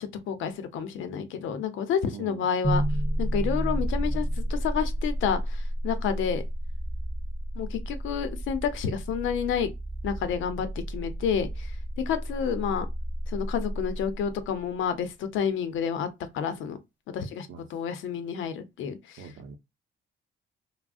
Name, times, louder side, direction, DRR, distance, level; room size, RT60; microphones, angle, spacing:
voice 1, 0.0-2.8 3.2-6.4 7.6-9.7 10.0-11.8 12.1-12.9 13.3-16.1 16.3-16.8 17.1-19.2, left 7 dB, 80° left, 0.6 m, -29 dB
voice 2, 2.1-2.5 17.5-17.8 19.2-19.6, right 6 dB, 75° right, 0.6 m, -43 dB
sound 1, 2.6-14.7, right 1 dB, 5° right, 0.4 m, -31 dB
3.3 x 2.1 x 2.3 m
cardioid pair, 90°, 20 cm